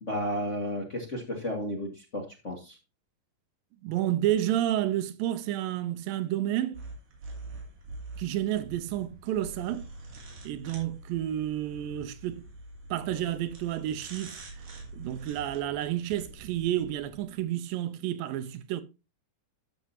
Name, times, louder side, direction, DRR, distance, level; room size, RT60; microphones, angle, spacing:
voice 1, 0.0-2.8, equal, 40° left, 1.1 m, -33 dB
voice 2, 3.8-6.8 8.2-9.9 10.4-12.5 12.9-14.5 14.9-18.8, right 12 dB, 85° right, 2.5 m, -30 dB
sound 1, 6.7-17.4, right 2 dB, 65° right, 4.6 m, -45 dB
13.5 x 6.3 x 2.7 m
omnidirectional pair, 4.1 m